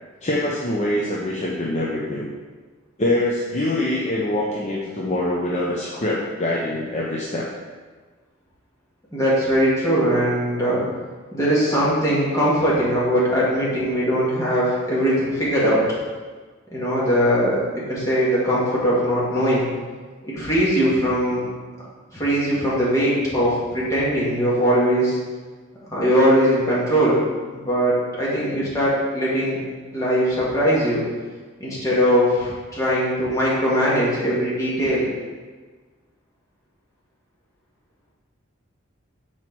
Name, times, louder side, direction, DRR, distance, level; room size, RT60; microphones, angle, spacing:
voice 1, 0.2-2.3 3.0-7.5, left 1 dB, 35° left, -4 dB, 0.7 m, -24 dB
voice 2, 9.1-10.8 11.3-15.8 16.7-17.6 17.9-19.7 20.2-21.4 22.1-25.2 25.9-27.2 27.5-29.6 29.9-31.0 31.6-35.1, equal, 15° left, -8 dB, 1.9 m, -20 dB
6.1 x 4.5 x 4.5 m, 1.4 s
head